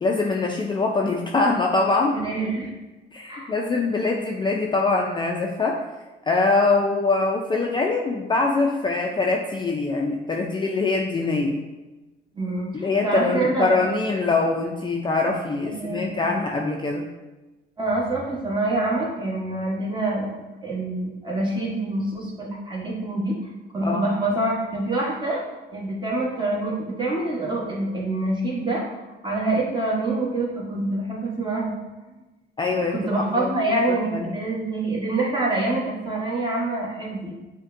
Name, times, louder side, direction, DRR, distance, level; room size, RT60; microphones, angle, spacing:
voice 1, 0.0-2.2 3.1-5.8 6.3-11.6 12.7-17.1 23.8-24.0 32.6-33.0 33.4-33.5 33.9-34.3, left 3 dB, 25° left, 0 dB, 0.4 m, -23 dB
voice 2, 2.1-2.7 3.3-3.5 12.3-13.8 15.6-16.4 17.8-20.4 20.6-23.4 23.7-25.4 25.7-28.8 29.2-31.7 32.7-37.3, right 2 dB, 20° right, -4 dB, 1.3 m, -26 dB
6.3 x 2.2 x 2.6 m, 1.1 s
cardioid pair, 90°, 20 cm